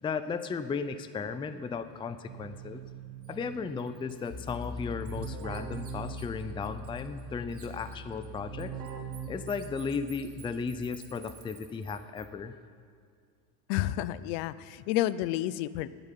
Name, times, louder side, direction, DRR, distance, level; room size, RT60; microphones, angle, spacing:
voice 1, 0.0-2.8 3.3-8.8 9.3-12.5, left 5 dB, 10° left, 11 dB, 0.4 m, -35 dB
Keyboard (musical), 1.7-10.0, right 8 dB, 90° right, 1.6 m, -44 dB
Bird, 3.2-3.3 3.8-7.2 7.5-12.3, right 6 dB, 30° right, 1.8 m, -54 dB
sound 1, 4.3-11.0, left 5 dB, 40° left, 1.8 m, -45 dB
voice 2, 13.7-15.9, left 14 dB, 75° left, 16 dB, 0.7 m, -30 dB
9.2 x 9.1 x 9.9 m, 2.2 s
supercardioid pair, 110°, 47 cm